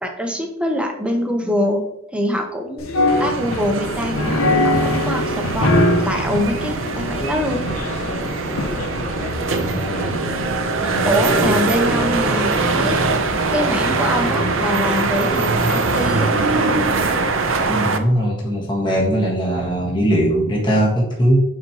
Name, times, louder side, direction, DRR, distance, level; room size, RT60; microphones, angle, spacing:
voice 1, 0.0-1.8 2.1-2.9 3.2-5.7 6.0-7.6 11.0-13.0 13.5-16.4, equal, 5° right, 2 dB, 0.9 m, -24 dB
sound 1, 2.8-16.1, left 1 dB, 80° left, 0.9 m, -25 dB
sound 2, 3.1-18.0, right 3 dB, 70° right, 0.7 m, -22 dB
sound 3, 3.7-17.7, equal, 55° left, 1.8 m, -33 dB
voice 2, 9.5-10.2 10.8-11.5 12.8-13.0 17.7-21.4, equal, 20° left, -4 dB, 1.5 m, -20 dB
9.4 x 4.3 x 3.0 m, 0.80 s
head